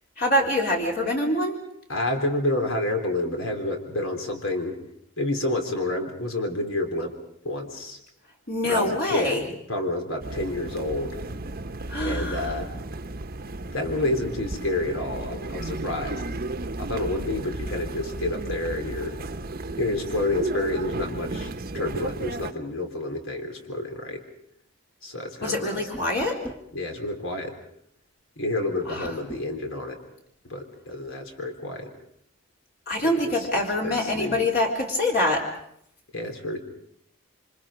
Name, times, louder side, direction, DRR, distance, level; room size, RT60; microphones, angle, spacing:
voice 1, 0.2-1.6 8.5-9.4 11.9-12.5 25.4-26.5 28.9-29.1 32.9-35.5, left 1 dB, 50° left, -1 dB, 3.8 m, -25 dB
voice 2, 1.9-4.8 5.2-7.2 7.4-8.0 8.6-9.4 9.7-11.2 12.0-12.7 13.7-16.2 16.8-19.2 19.8-24.2 25.0-25.8 26.7-27.6 28.4-30.0 30.4-31.9 33.0-34.5 36.1-36.6, left 1 dB, 80° left, 4 dB, 3.6 m, -29 dB
sound 1, 10.2-22.5, right 2 dB, 45° right, 0.9 m, -34 dB
sound 2, 25.9-26.7 29.0-29.5, right 1 dB, 10° left, 2.2 m, -40 dB
28.0 x 26.0 x 5.1 m, 0.69 s
head